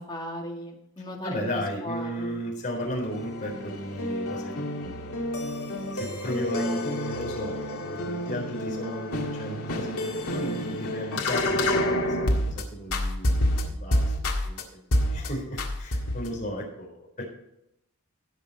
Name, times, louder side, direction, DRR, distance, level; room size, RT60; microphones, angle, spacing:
voice 1, 0.0-1.5 1.8-2.4, equal, 20° left, 0 dB, 2.1 m, -37 dB
voice 2, 1.2-4.5 4.8-5.2 5.9-14.6 15.1-17.2, equal, 35° left, -2 dB, 3.9 m, -35 dB
sound 1, 2.9-12.6 12.9-14.6 14.9-15.3 15.6-16.3, left 1 dB, 75° left, 1.9 m, -28 dB
16.5 x 6.1 x 4.2 m, 0.80 s
head